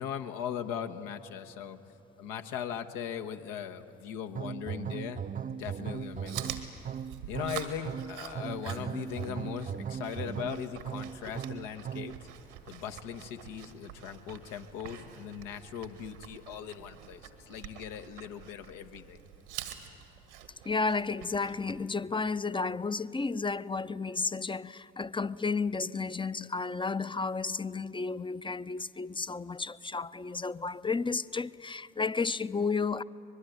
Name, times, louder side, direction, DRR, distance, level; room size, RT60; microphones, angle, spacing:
voice 1, 0.0-1.8 2.2-6.6 7.3-12.3 12.7-19.2, left 8 dB, 75° left, 1.3 m, -39 dB
sound 1, 4.3-12.2, right 8 dB, 25° right, 0.5 m, -38 dB
Chewing mastication, 5.9-21.8, right 9 dB, 85° right, 1.7 m, -46 dB
voice 2, 20.6-33.0, left 4 dB, 15° left, 0.6 m, -32 dB
24.0 x 21.5 x 9.3 m
hypercardioid pair, 45°, 33 cm